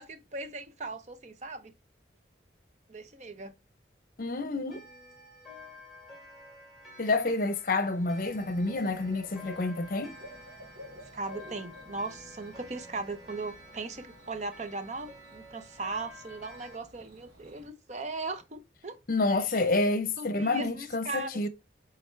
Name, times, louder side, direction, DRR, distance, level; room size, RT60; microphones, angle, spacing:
voice 1, 0.0-1.7 2.9-3.5 11.1-19.0 19.3-19.6 20.2-21.3, right 3 dB, 40° right, 0.8 m, -38 dB
voice 2, 4.2-4.8 7.0-10.2 19.1-21.5, left 2 dB, 50° left, 0.7 m, -28 dB
Clock, 4.7-16.8, left 2 dB, ahead, 2.2 m, -51 dB
Bird / Cricket, 7.9-17.7, left 1 dB, 70° right, 2.4 m, -51 dB
7.7 x 3.7 x 3.3 m
head